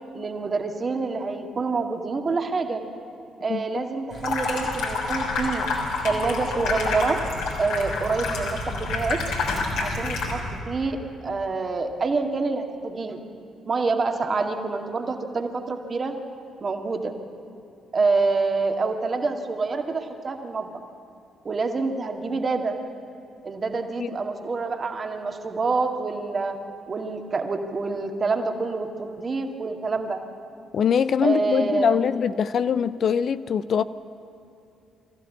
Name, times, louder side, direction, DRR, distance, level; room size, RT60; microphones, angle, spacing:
voice 1, 0.1-2.8 3.4-5.7 6.0-7.2 7.6-9.2 9.8-11.0 11.2-13.2 13.7-16.2 16.6-17.1 17.9-20.7 21.4-22.8 23.4-26.6 26.9-30.2 31.2-32.1, right 4 dB, 40° right, 4 dB, 2.1 m, -27 dB
voice 2, 3.5-3.8 24.0-24.1 30.7-33.8, left 7 dB, 50° left, 14 dB, 0.5 m, -23 dB
Water tap faucet / Sink (filling or washing), 4.1-10.6, left 3 dB, 70° left, 3.4 m, -28 dB
22.5 x 15.0 x 8.5 m, 2.6 s
figure-of-eight pair, 40°, 0 cm